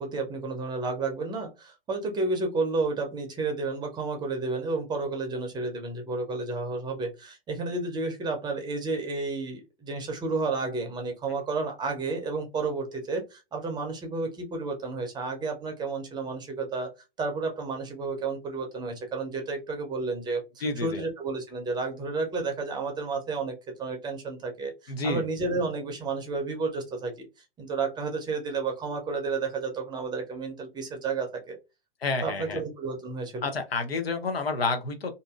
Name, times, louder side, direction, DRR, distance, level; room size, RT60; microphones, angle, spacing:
voice 1, 0.0-16.9 17.2-27.3 27.6-31.6 32.2-33.5, right 3 dB, 15° right, 4 dB, 0.6 m, -31 dB
voice 2, 20.6-21.0 24.9-25.3 32.0-32.6 33.4-35.1, left 3 dB, 85° left, 5 dB, 0.8 m, -29 dB
2.7 x 2.6 x 2.3 m, 0.26 s
figure-of-eight pair, 110°, 30 cm